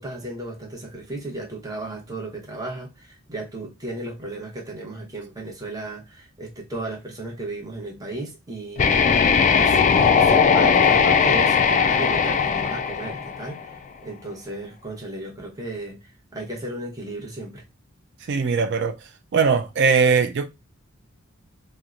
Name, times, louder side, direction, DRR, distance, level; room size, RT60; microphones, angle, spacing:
voice 1, 0.0-9.0 9.5-17.6, right 2 dB, 20° right, 0.9 m, -35 dB
sound 1, 8.8-13.7, left 6 dB, 35° left, 0.3 m, -18 dB
voice 2, 18.3-19.0 19.3-20.5, right 5 dB, 55° right, 0.4 m, -20 dB
4.3 x 2.1 x 2.5 m
head